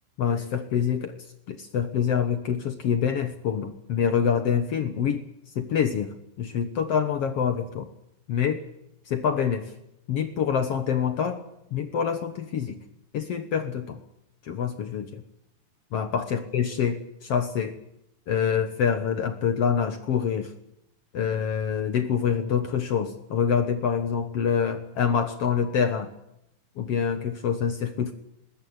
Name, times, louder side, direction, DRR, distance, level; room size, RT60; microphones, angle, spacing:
voice 1, 0.2-1.2 1.5-5.2 5.6-7.9 8.3-8.6 9.1-9.7 10.1-11.4 11.7-12.8 13.1-14.0 14.4-15.2 15.9-17.8 18.3-20.5 21.1-26.1 26.8-28.1, left 7 dB, 60° left, 9 dB, 1.7 m, -26 dB
21.0 x 16.0 x 9.6 m, 0.81 s
omnidirectional pair, 4.1 m